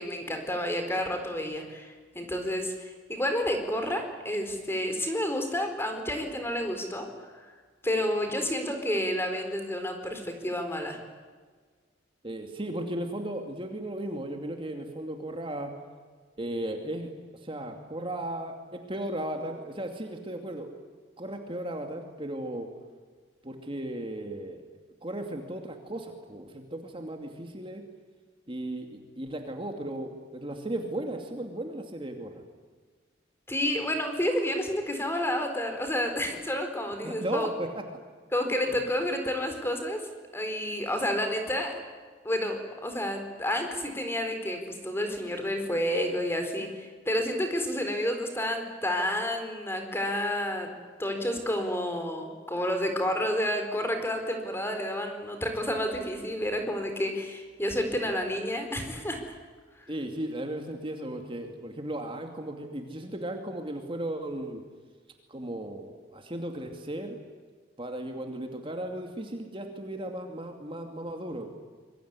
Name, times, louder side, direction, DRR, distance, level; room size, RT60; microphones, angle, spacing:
voice 1, 0.0-7.5 7.8-11.0 33.5-37.5 38.3-40.0 40.3-41.7 42.2-50.7 51.0-59.2, left 1 dB, 15° left, 5 dB, 4.3 m, -30 dB
voice 2, 12.2-15.8 16.4-20.7 21.2-22.7 23.4-24.6 25.0-27.8 28.5-32.4 37.0-37.8 38.7-38.8 59.9-64.6 65.3-67.2 67.8-71.5, right 1 dB, 25° right, 4 dB, 2.6 m, -36 dB
26.0 x 23.5 x 9.7 m, 1.5 s
head